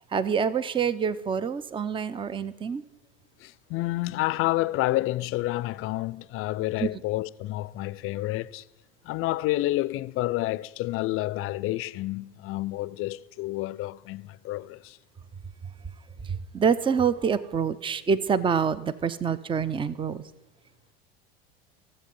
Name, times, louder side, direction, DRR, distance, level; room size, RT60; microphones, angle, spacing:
voice 1, 0.0-2.8 6.8-6.9 16.2-20.2, right 6 dB, 15° right, 0.6 m, -26 dB
voice 2, 3.4-8.6 9.0-15.0, left 17 dB, 50° left, 0.5 m, -29 dB
15.5 x 7.6 x 5.4 m
hypercardioid pair, 90°, 29 cm